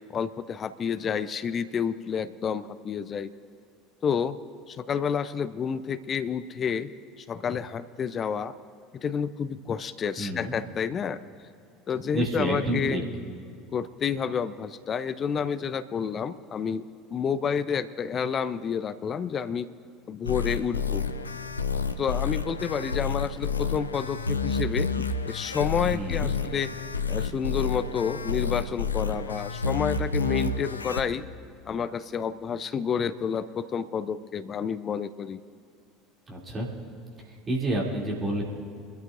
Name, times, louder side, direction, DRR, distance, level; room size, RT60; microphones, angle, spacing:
voice 1, 0.1-3.3 4.0-4.4 4.7-6.9 7.2-8.5 9.0-11.2 11.9-13.1 13.7-16.8 17.1-19.7 20.1-21.0 22.0-26.7 27.1-31.3 31.7-35.4, left 7 dB, 30° left, 13 dB, 0.5 m, -29 dB
voice 2, 10.2-10.5 12.1-13.0 25.9-26.3 36.3-36.7 37.3-38.4, right 1 dB, 25° right, -3 dB, 2.8 m, -29 dB
sound 1, 20.2-31.0, left 5 dB, 80° left, 0.5 m, -29 dB
25.0 x 13.5 x 2.6 m, 2.5 s
figure-of-eight pair, 70°, 0 cm